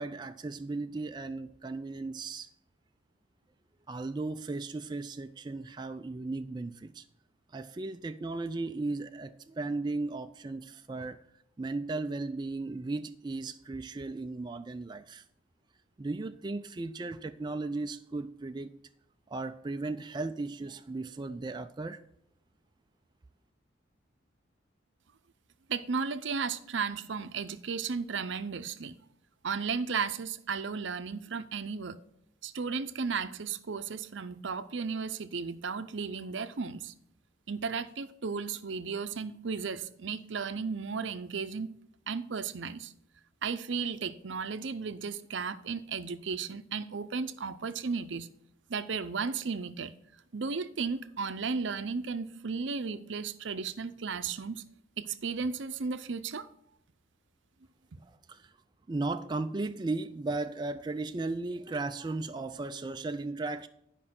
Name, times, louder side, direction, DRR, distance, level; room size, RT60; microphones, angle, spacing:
voice 1, 0.0-2.5 3.9-7.0 7.5-11.2 11.6-15.2 16.0-18.7 19.3-22.0 58.0-58.5 58.9-63.7, right 3 dB, 20° right, 0.3 m, -36 dB
voice 2, 25.7-29.0 29.4-32.0 32.4-36.9 37.5-41.7 42.1-42.9 43.4-48.3 48.7-49.9 50.3-54.6 55.0-56.5, right 5 dB, 65° right, 0.6 m, -34 dB
11.0 x 5.4 x 5.9 m
head